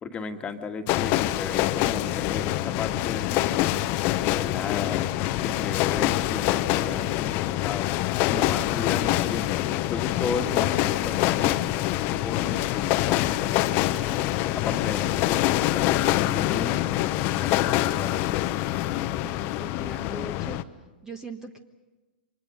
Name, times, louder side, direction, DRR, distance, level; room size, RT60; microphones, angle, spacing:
voice 1, 0.0-3.7 4.1-5.1 5.4-7.9 8.3-9.5 9.9-11.6 12.1-14.2 14.5-18.2, left 5 dB, 20° left, 5 dB, 1.9 m, -35 dB
sound 1, 0.9-20.6, left 15 dB, 40° left, 0.9 m, -25 dB
voice 2, 19.2-20.6 21.0-21.6, right 3 dB, 10° right, 7 dB, 1.3 m, -40 dB
29.5 x 25.0 x 5.2 m, 1.2 s
hypercardioid pair, 115°, 6 cm